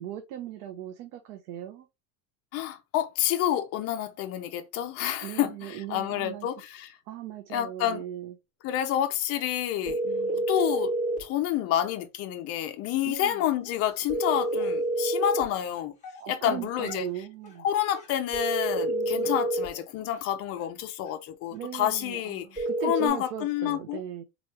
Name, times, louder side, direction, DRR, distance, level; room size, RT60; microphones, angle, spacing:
voice 1, 0.0-1.9 5.2-6.5 7.1-8.3 9.9-10.5 13.0-13.4 16.2-17.7 18.9-19.4 21.5-24.2, right 11 dB, 65° right, 0.8 m, -39 dB
voice 2, 2.5-7.0 7.5-8.0 8.6-10.0 10.5-10.9 11.2-15.9 16.3-17.1 17.6-24.0, left 11 dB, 35° left, 0.6 m, -29 dB
sound 1, 9.8-11.3 14.1-15.5 18.3-19.7 22.6-23.1, right 1 dB, 30° right, 2.1 m, -28 dB
Dog, 13.6-14.0 14.6-14.7 15.5-15.6 16.0-17.1 17.4-17.6 17.9-19.4 19.7-19.8 20.1-20.2 20.6-20.7 21.0-21.1 21.5-21.6 21.9-22.0, left 4 dB, 15° left, 1.4 m, -48 dB
3.8 x 3.1 x 3.3 m
supercardioid pair, 155°, 40 cm